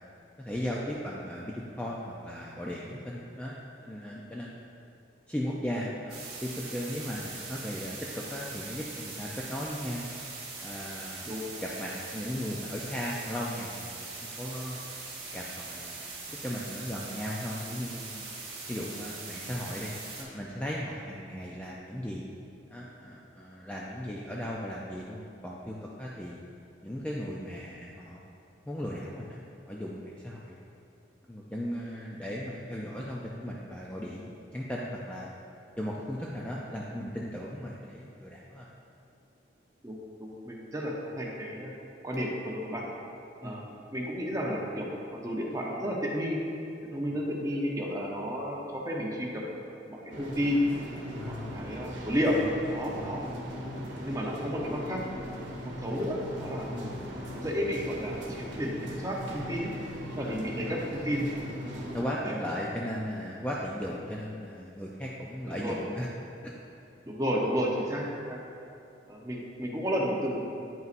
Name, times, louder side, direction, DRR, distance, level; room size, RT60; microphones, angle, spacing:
voice 1, 0.4-3.6 3.8-4.5 5.3-10.1 10.6-11.3 11.6-14.8 15.3-16.0 16.3-18.3 18.7-22.2 22.7-26.4 26.8-28.2 28.7-30.6 31.3-35.3 35.8-38.7 43.4-43.6 51.1-51.7 52.9-53.1 56.7-56.9 60.2-60.8 61.9-66.1 66.4-66.5, equal, 5° left, -5 dB, 0.4 m, -37 dB
sound 1, 6.1-20.2, right 3 dB, 50° right, 1.4 m, -41 dB
voice 2, 39.8-41.7 42.0-42.8 43.4-43.6 43.9-46.4 46.9-49.4 49.7-50.7 51.3-52.4 52.7-53.2 54.0-55.0 55.4-56.9 57.3-59.7 60.2-61.3 61.8-61.9 62.2-62.3 65.6-65.8 67.0-68.4 69.1-70.4, equal, 15° right, -2 dB, 0.7 m, -32 dB
sound 2, 50.1-62.0, equal, 75° right, 1.0 m, -39 dB
9.1 x 5.5 x 2.5 m, 2.6 s
head